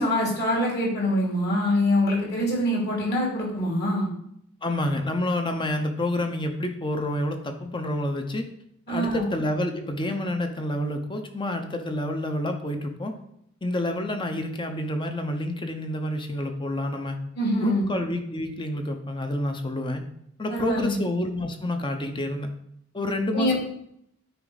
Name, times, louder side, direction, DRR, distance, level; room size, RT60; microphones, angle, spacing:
voice 1, 0.0-4.1 8.9-9.2 17.3-17.8 20.5-21.0 23.3-23.5, left 1 dB, 50° left, -3 dB, 2.9 m, -24 dB
voice 2, 4.6-8.5 8.9-13.1 13.6-17.2 17.6-20.0 20.4-22.5 22.9-23.5, left 1 dB, 25° left, 5 dB, 0.8 m, -28 dB
9.4 x 4.7 x 4.0 m, 0.73 s
head